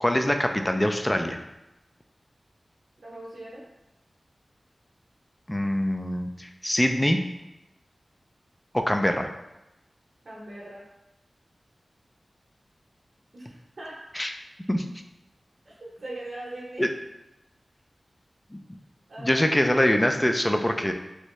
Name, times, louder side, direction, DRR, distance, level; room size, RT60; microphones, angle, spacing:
voice 1, 0.0-1.4 5.5-7.2 8.7-9.3 14.1-14.3 14.7-14.9 16.8-16.9 18.5-18.8 19.2-20.9, left 1 dB, 15° left, 5 dB, 0.3 m, -24 dB
voice 2, 3.0-3.6 10.2-10.8 13.3-14.0 15.6-16.9 19.1-19.5, right 1 dB, 60° right, -6 dB, 0.7 m, -40 dB
3.1 x 2.7 x 3.0 m, 0.94 s
wide cardioid pair, 90°, 0 cm